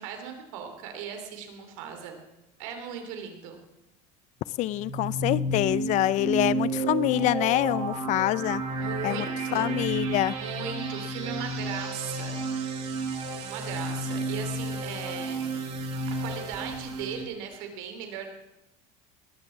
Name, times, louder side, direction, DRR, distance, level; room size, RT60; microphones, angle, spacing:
voice 1, 0.0-2.2 2.6-3.6 8.8-9.9 10.3-12.4 13.4-15.7 16.1-18.3, right 7 dB, 85° right, 5 dB, 3.0 m, -38 dB
voice 2, 4.6-8.6 9.0-9.2 9.5-10.3, left 15 dB, 50° left, 19 dB, 0.5 m, -25 dB
sound 1, 4.7-17.2, right 2 dB, 45° right, 3.9 m, -32 dB
20.0 x 7.8 x 7.3 m, 0.95 s
cardioid pair, 140°, 16 cm